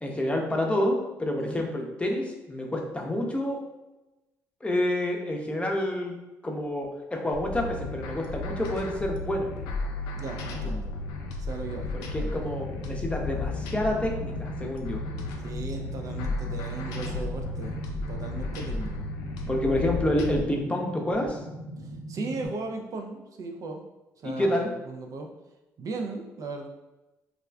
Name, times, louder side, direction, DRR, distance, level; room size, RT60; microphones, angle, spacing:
voice 1, 0.0-3.6 4.6-6.2 6.4-9.5 11.9-15.0 19.5-21.4 24.2-24.7, left 1 dB, 15° left, 1 dB, 0.6 m, -28 dB
sound 1, 7.3-20.4, left 3 dB, 80° left, 0.3 m, -34 dB
voice 2, 10.2-10.9 11.4-12.4 15.4-17.8 18.1-19.1 21.8-23.8 24.2-25.3 25.8-26.7, right 3 dB, 50° right, 3 dB, 0.4 m, -37 dB
sound 2, 12.5-22.5, right 1 dB, 85° right, 0.8 m, -40 dB
2.3 x 2.3 x 3.3 m, 1.0 s
hypercardioid pair, 55°, 7 cm